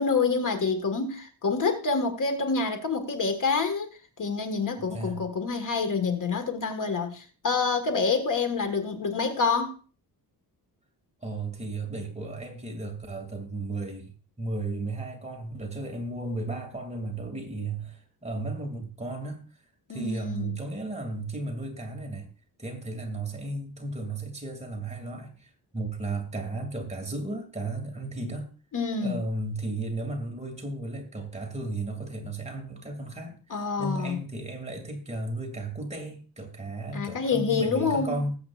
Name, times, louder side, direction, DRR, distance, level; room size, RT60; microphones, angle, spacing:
voice 1, 0.0-3.9 4.2-9.8 19.9-20.5 28.7-29.2 33.5-34.2 36.9-38.1, left 4 dB, 50° left, 1.6 m, -27 dB
voice 2, 4.8-5.2 11.2-19.5 19.9-22.3 22.6-28.5 29.0-38.4, right 2 dB, 15° right, 2.5 m, -34 dB
20.0 x 7.9 x 2.5 m
wide cardioid pair, 140°, 39 cm